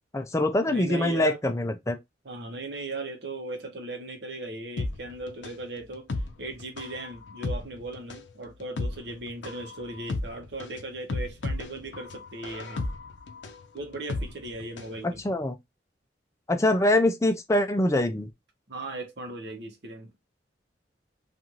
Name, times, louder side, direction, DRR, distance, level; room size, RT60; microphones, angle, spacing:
voice 1, 0.1-2.0 15.2-15.5 16.5-18.3, left 1 dB, 15° left, 0.4 m, -24 dB
voice 2, 0.7-1.4 2.2-6.1 6.4-12.9 13.7-15.2 18.7-20.1, right 2 dB, 65° right, 0.9 m, -37 dB
sound 1, 4.8-15.0 15.3-15.4, left 2 dB, 85° left, 0.5 m, -34 dB
2.6 x 2.5 x 2.9 m
head